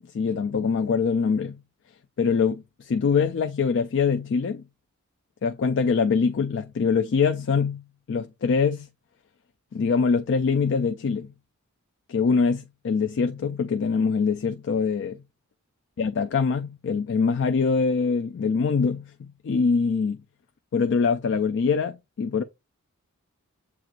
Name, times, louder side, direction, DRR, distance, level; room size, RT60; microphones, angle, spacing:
voice 1, 0.0-1.6 2.2-4.6 5.4-8.9 9.7-11.3 12.1-15.2 16.0-20.2 20.7-22.4, left 5 dB, 55° left, 0.4 m, -24 dB
7.4 x 2.9 x 2.4 m
head